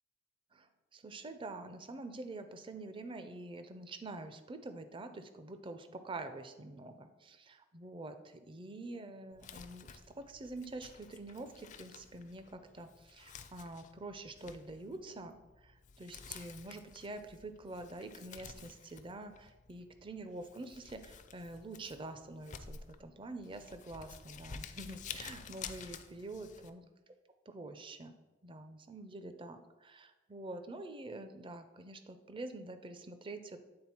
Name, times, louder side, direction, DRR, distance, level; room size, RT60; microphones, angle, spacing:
voice 1, 0.5-26.8 27.5-28.1 28.4-33.6, right 2 dB, 30° right, 9 dB, 0.5 m, -46 dB
Crumpling crinkling, 9.3-26.7, left 6 dB, 40° left, 0.4 m, -51 dB
8.6 x 3.8 x 4.3 m, 1.1 s
head